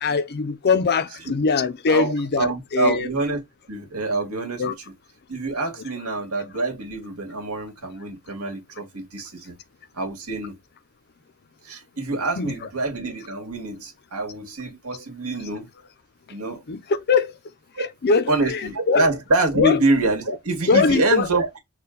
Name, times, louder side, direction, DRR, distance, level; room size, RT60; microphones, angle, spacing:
voice 1, 0.0-2.5 2.7-3.1 4.6-4.7 12.4-12.5 16.7-17.3 17.8-18.6 18.9-19.1 19.6-19.8 20.7-21.3, left 4 dB, 45° left, 0.5 m, -21 dB
voice 2, 1.9-3.4 3.7-4.6 5.3-9.6 9.9-10.6 11.6-15.7 16.3-16.6 17.7-17.8 18.3-21.6, right 2 dB, 70° right, 1.9 m, -25 dB
4.2 x 2.3 x 3.8 m
head